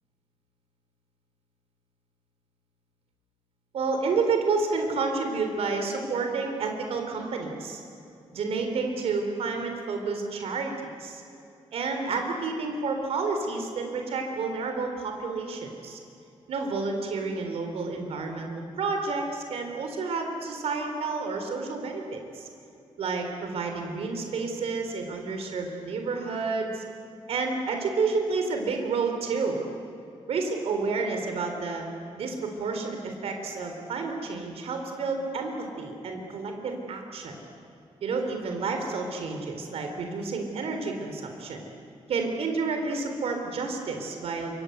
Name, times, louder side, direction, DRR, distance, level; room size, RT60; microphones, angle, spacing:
voice 1, 3.7-7.8 8.3-10.7 11.0-11.2 11.7-16.0 16.5-18.5 18.8-22.5 23.0-26.8 27.3-29.6 30.3-31.9 32.2-37.3 38.0-41.7 42.1-44.5, right 4 dB, 80° right, 4 dB, 3.9 m, -30 dB
28.5 x 26.0 x 8.1 m, 2.7 s
wide cardioid pair, 145°, 10 cm